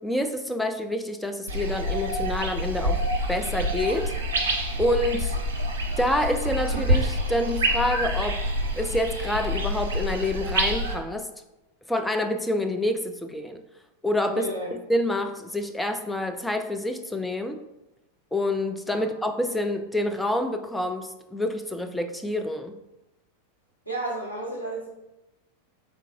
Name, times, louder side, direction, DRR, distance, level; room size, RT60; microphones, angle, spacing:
voice 1, 0.0-4.1 4.8-5.3 6.0-8.4 8.8-11.3 11.9-13.6 14.0-17.6 18.3-22.8, left 1 dB, 5° left, 6 dB, 0.3 m, -27 dB
sound 1, 1.5-10.9, equal, 65° right, 0.6 m, -27 dB
voice 2, 14.3-14.7 18.9-19.0 23.8-24.9, right 1 dB, 85° left, -3 dB, 1.2 m, -32 dB
3.7 x 3.5 x 2.7 m, 0.96 s
figure-of-eight pair, 90°, 0 cm